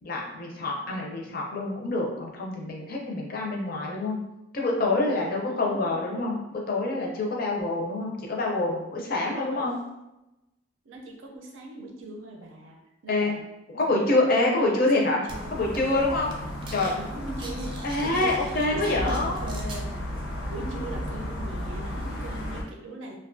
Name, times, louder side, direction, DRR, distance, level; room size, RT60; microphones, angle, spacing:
voice 1, 0.0-4.2 4.5-9.8 13.1-13.3 13.7-15.2 15.5-16.3 16.7-16.9 17.8-19.4, left 2 dB, 50° left, -1 dB, 0.5 m, -26 dB
voice 2, 5.4-6.3 9.3-9.7 10.8-13.4 13.9-15.9 16.9-17.7 18.0-18.3 18.7-20.0 20.5-23.2, right 2 dB, 80° right, 0 dB, 0.5 m, -40 dB
sound 1, 15.3-22.6, equal, 85° left, 0.7 m, -34 dB
sound 2, 15.3-15.4 15.7-16.0 16.3-16.9 17.2-19.8, right 2 dB, 25° right, 0.3 m, -43 dB
2.4 x 2.2 x 2.5 m, 0.94 s
head